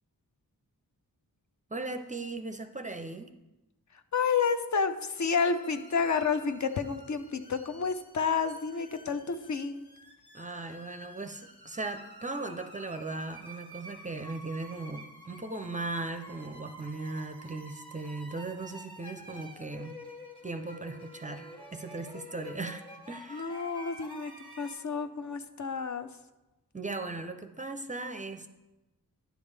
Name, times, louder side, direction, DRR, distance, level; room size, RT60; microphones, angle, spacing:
voice 1, 1.7-3.3 10.3-20.0 20.4-23.6 26.7-28.5, right 3 dB, 20° right, 7 dB, 0.4 m, -38 dB
voice 2, 4.1-9.9 23.3-24.3 24.6-26.1, left 5 dB, 55° left, 9 dB, 0.6 m, -30 dB
sound 1, 5.2-24.7, equal, 15° left, 1.3 m, -49 dB
10.0 x 7.2 x 3.3 m, 1.0 s
wide cardioid pair, 110°, 35 cm